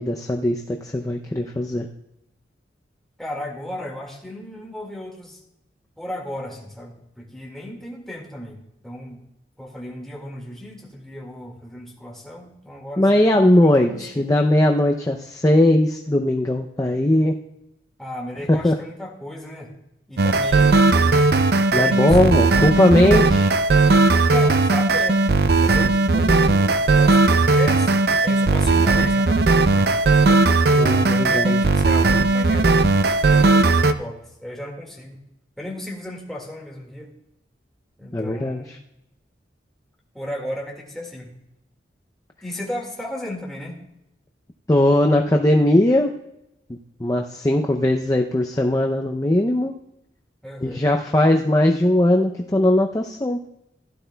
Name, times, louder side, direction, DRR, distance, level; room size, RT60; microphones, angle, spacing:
voice 1, 0.0-1.9 13.0-17.3 18.5-18.7 21.7-23.5 30.7-31.6 38.1-38.8 44.7-46.1 47.0-49.7 50.6-53.5, left 1 dB, 20° left, 2 dB, 0.5 m, -19 dB
voice 2, 3.2-5.4 6.0-9.2 9.6-14.3 18.0-19.7 20.1-21.3 21.7-22.9 24.3-25.2 25.6-27.9 28.2-30.5 31.1-35.2 35.6-37.1 38.0-38.8 40.1-41.3 42.4-43.8 50.4-50.8, left 1 dB, ahead, -2 dB, 1.9 m, -35 dB
sound 1, 20.2-33.9, right 3 dB, 55° right, 0.5 m, -17 dB
16.0 x 11.5 x 2.2 m, 0.84 s
head